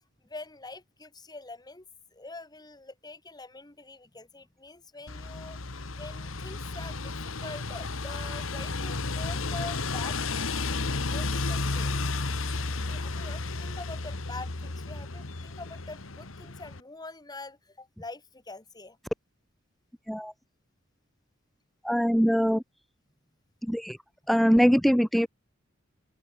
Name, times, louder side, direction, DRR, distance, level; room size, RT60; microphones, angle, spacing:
voice 1, 0.2-1.8 2.1-11.9 12.8-19.0, left 3 dB, 20° left, 2.6 m, -44 dB
sound 1, 5.1-16.8, left 3 dB, 80° left, 1.6 m, -33 dB
voice 2, 21.8-22.6 23.7-24.0 24.3-25.3, equal, ahead, 0.4 m, -22 dB
open air
head